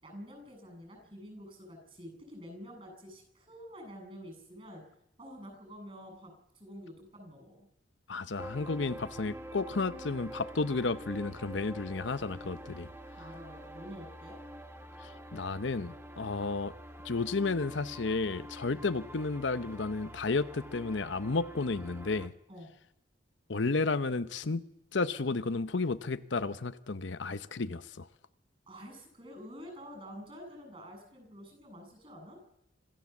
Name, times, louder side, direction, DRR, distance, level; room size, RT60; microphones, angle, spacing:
voice 1, 0.0-4.8 5.2-7.6 13.2-14.4 22.5-22.7 28.7-32.4, equal, 30° right, 7.9 m, -48 dB
voice 2, 8.1-12.9 15.0-16.7 17.0-22.3 23.5-24.6 24.9-28.1, left 3 dB, 70° left, 0.8 m, -32 dB
sound 1, 8.4-22.3, equal, 10° right, 1.1 m, -47 dB
26.0 x 14.5 x 7.2 m
head